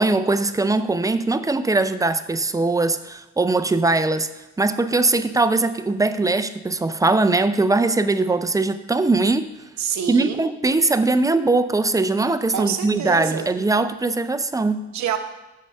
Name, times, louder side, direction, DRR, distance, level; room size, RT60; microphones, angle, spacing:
voice 1, 0.0-4.3 4.6-9.5 10.1-14.8, right 3 dB, 10° right, 11 dB, 0.3 m, -21 dB
voice 2, 9.8-10.5 12.5-13.5 14.9-15.2, right 9 dB, 65° right, 7 dB, 0.8 m, -27 dB
6.5 x 5.6 x 5.3 m, 1.0 s
cardioid pair, 90°, 30 cm